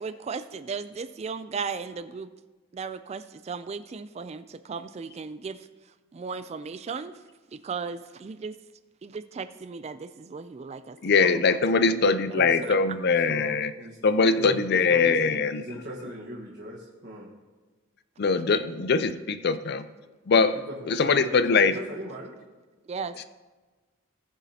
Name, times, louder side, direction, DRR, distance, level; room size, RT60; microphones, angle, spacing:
voice 1, 0.0-2.3 2.7-5.7 6.1-7.1 7.5-8.6 9.0-11.1 11.7-12.0 22.9-23.2, right 5 dB, 30° right, 12 dB, 0.3 m, -36 dB
voice 2, 11.0-13.7 14.0-15.6 18.2-19.8 20.3-20.6 20.9-21.7, left 4 dB, 50° left, 12 dB, 0.5 m, -22 dB
voice 3, 12.3-12.9 13.2-14.0 14.3-17.3 20.7-21.4 21.6-22.3, equal, 55° right, -5 dB, 1.3 m, -39 dB
19.0 x 7.1 x 2.8 m, 1.3 s
head